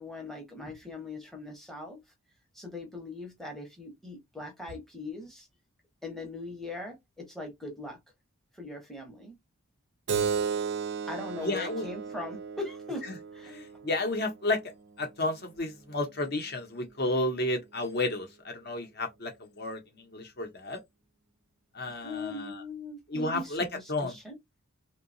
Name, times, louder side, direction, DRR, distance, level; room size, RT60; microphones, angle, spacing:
voice 1, 0.0-2.0 2.5-5.5 6.0-8.0 8.5-9.4 11.1-13.1 13.3-13.5 21.8-24.4, left 2 dB, ahead, 0.7 m, -40 dB
Keyboard (musical), 10.1-15.2, right 6 dB, 50° right, 0.4 m, -35 dB
voice 2, 11.4-11.9 13.5-14.6 15.0-19.8 20.1-20.8 21.7-22.6 23.1-24.1, left 2 dB, 45° left, 0.7 m, -32 dB
2.7 x 2.2 x 2.5 m
head